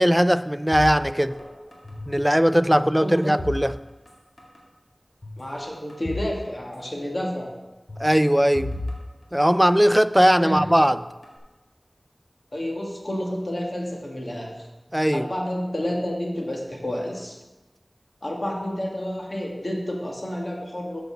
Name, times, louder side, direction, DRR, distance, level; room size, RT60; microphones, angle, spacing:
voice 1, 0.0-1.3 2.1-3.8 8.0-8.8 9.3-11.0 14.9-15.3, equal, 5° right, 13 dB, 0.3 m, -19 dB
sound 1, 0.7-2.3 2.5-4.1 4.4-4.6 5.2-6.3 6.6-6.7 7.9-10.0 10.5-11.4, left 1 dB, 60° left, 2.0 m, -35 dB
voice 2, 2.4-3.4 5.4-7.6 10.4-10.6 12.5-14.7 15.1-17.4 18.2-21.0, equal, 45° left, -1 dB, 1.9 m, -30 dB
6.9 x 6.4 x 6.3 m, 1.1 s
wide cardioid pair, 55°, 0 cm